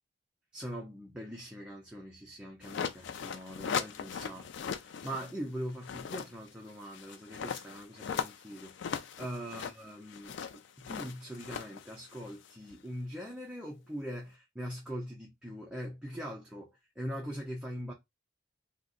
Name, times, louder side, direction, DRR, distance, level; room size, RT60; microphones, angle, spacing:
voice 1, 0.5-17.9, equal, 5° right, 0.5 m, -42 dB
sound 1, 2.6-5.3 5.7-12.8, left 7 dB, 65° left, 0.3 m, -39 dB
2.5 x 2.0 x 3.7 m
head